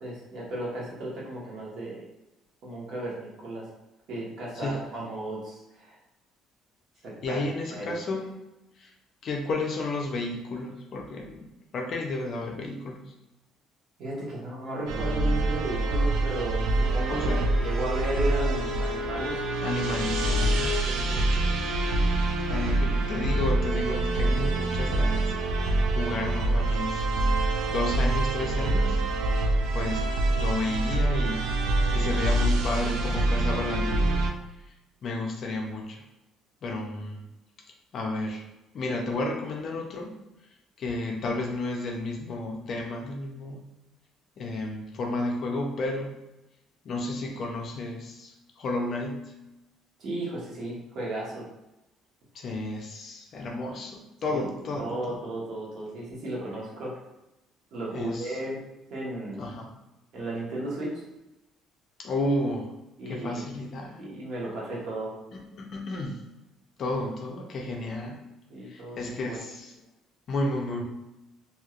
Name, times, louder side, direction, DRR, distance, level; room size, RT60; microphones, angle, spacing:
voice 1, 0.0-2.0 2.6-3.7 4.1-6.0 7.0-7.4 7.8-8.0 14.0-17.3 17.6-19.3 20.8-21.3 50.0-51.5 54.3-54.4 54.8-57.0 57.7-58.6 58.9-59.4 60.1-61.0 63.0-63.4 64.0-65.1 68.5-69.4, right 1 dB, 60° right, -5 dB, 1.2 m, -34 dB
voice 2, 7.2-8.3 8.8-8.9 9.2-11.5 11.7-13.1 17.1-17.6 19.6-20.7 22.5-27.1 27.7-29.1 29.3-30.0 30.3-34.2 35.0-36.0 36.6-37.2 37.9-38.4 38.7-40.1 40.8-43.6 44.4-46.1 46.8-49.3 52.3-55.2 57.9-58.4 59.4-59.8 62.0-62.7 63.1-64.1 65.3-66.2 66.8-68.2 68.6-69.8 70.3-70.8, left 2 dB, 50° left, 1 dB, 0.5 m, -32 dB
sound 1, 14.9-34.3, right 2 dB, 85° right, 0.4 m, -26 dB
Bowed string instrument, 16.8-20.9, left 4 dB, 30° right, 1.2 m, -35 dB
3.1 x 2.7 x 2.4 m, 0.96 s
cardioid pair, 125°, 0 cm